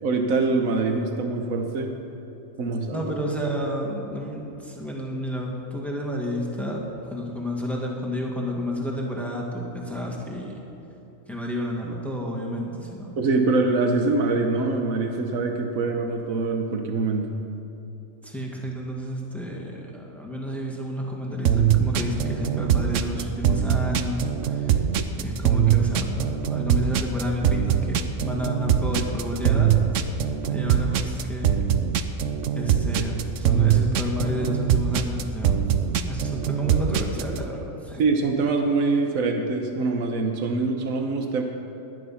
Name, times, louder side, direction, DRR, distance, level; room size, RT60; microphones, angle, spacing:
voice 1, 0.0-1.9 2.6-3.0 13.2-17.3 38.0-41.4, right 3 dB, 85° right, 4 dB, 1.5 m, -24 dB
voice 2, 2.9-10.6 11.3-13.2 18.2-24.8 25.2-30.1 30.5-31.6 32.5-38.0, equal, ahead, -1 dB, 1.9 m, -30 dB
sound 1, 21.4-37.4, right 9 dB, 70° right, 1.0 m, -22 dB
19.0 x 11.0 x 5.7 m, 2.8 s
omnidirectional pair, 1.4 m